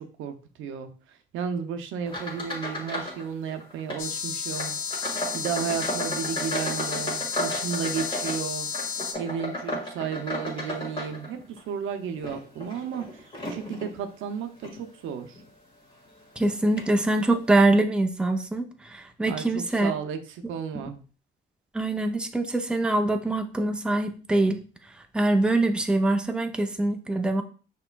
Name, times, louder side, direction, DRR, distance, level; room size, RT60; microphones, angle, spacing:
voice 1, 0.0-4.8 5.3-8.7 9.2-15.4 19.2-21.0, right 7 dB, 85° right, 7 dB, 0.6 m, -33 dB
sound 1, 2.0-3.2 3.5-4.0 4.5-11.6 12.1-13.9 14.6-14.8 15.4-15.5 16.4-16.5 16.8-16.9, left 1 dB, 25° left, 1.7 m, -34 dB
sound 2, 4.0-9.1, left 6 dB, 85° left, 0.6 m, -32 dB
voice 2, 16.4-18.6 18.9-19.9 21.7-24.6 25.1-27.4, right 2 dB, 5° right, 6 dB, 0.4 m, -24 dB
5.7 x 3.0 x 2.2 m, 0.39 s
cardioid pair, 90°, 20 cm